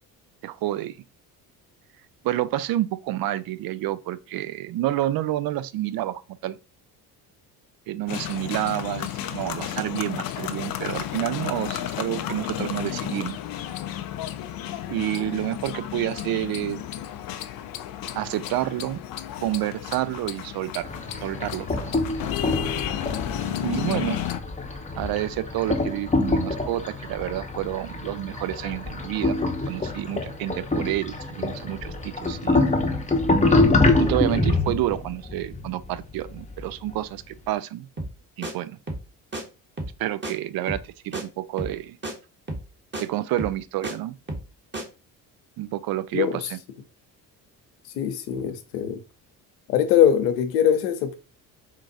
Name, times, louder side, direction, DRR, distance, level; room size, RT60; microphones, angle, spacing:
voice 1, 0.4-1.0 2.2-6.6 7.9-13.4 14.9-16.8 18.1-19.0 19.4-20.9 21.2-21.9 23.6-24.2 25.0-29.4 29.7-32.7 34.0-37.9 38.4-38.8 40.0-42.0 43.0-44.2 45.6-46.6, right 14 dB, 50° right, 0.5 m, -29 dB
sound 1, 8.1-24.4, left 11 dB, 45° left, 0.5 m, -32 dB
sound 2, 20.8-36.9, left 2 dB, 15° left, 0.8 m, -25 dB
sound 3, 38.0-38.2 38.4-38.5 38.9-39.1 39.3-39.4 39.8-40.0 40.2-40.3 40.7-40.9 41.1-41.2 41.6-41.8 42.0-42.1 42.5-42.7 42.9-43.0 43.4-43.9 44.3-44.5 44.7-44.8, right 1 dB, 25° right, 1.5 m, -32 dB
voice 2, 48.0-49.0 49.7-51.1, left 9 dB, 80° left, 0.8 m, -22 dB
4.5 x 2.5 x 3.9 m
hypercardioid pair, 55°, 49 cm